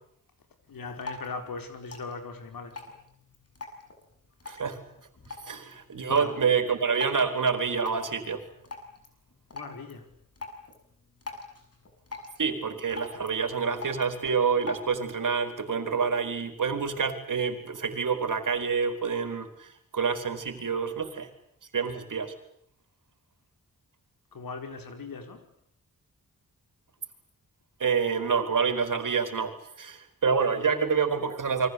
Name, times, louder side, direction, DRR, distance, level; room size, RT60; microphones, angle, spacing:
voice 1, 0.7-2.8 6.0-6.4 9.5-10.1 24.3-25.4, left 4 dB, 90° left, 5.1 m, -39 dB
Drip, 0.7-15.2, left 3 dB, 45° left, 6.7 m, -45 dB
voice 2, 4.5-4.8 5.3-8.4 12.4-21.3 21.7-22.3 27.8-31.7, right 5 dB, 65° right, 4.3 m, -27 dB
29.0 x 24.0 x 8.5 m
wide cardioid pair, 90°, 34 cm